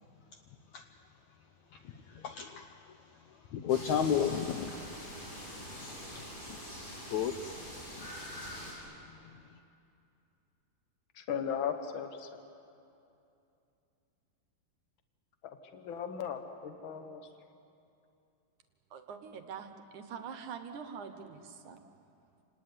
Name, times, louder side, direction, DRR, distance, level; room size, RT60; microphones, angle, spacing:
voice 1, 1.7-3.0 3.3-4.8 6.1-6.6 7.1-8.3, left 8 dB, 85° left, 6 dB, 1.6 m, -34 dB
sound 1, 3.7-8.7, equal, 30° left, 6.7 m, -44 dB
voice 2, 11.1-12.4 15.4-17.2, left 8 dB, 55° left, 7 dB, 1.3 m, -37 dB
voice 3, 18.9-19.7 19.9-21.8, right 6 dB, 65° right, 7 dB, 2.2 m, -44 dB
28.5 x 18.5 x 9.7 m, 2.7 s
omnidirectional pair, 4.4 m